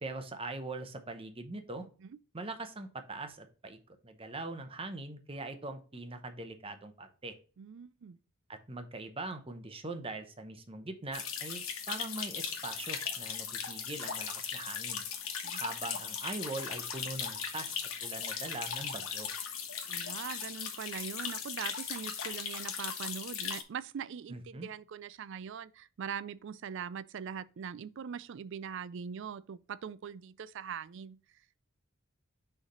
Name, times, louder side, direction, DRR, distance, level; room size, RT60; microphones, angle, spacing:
voice 1, 0.0-1.9 2.3-7.4 8.5-15.1 15.5-19.3 24.3-24.7, right 2 dB, 25° right, 0.8 m, -42 dB
voice 2, 7.6-8.2 15.4-15.6 19.9-31.2, right 7 dB, 60° right, 0.4 m, -42 dB
sound 1, 11.1-23.6, left 7 dB, 75° left, 1.2 m, -38 dB
6.2 x 3.3 x 5.4 m
head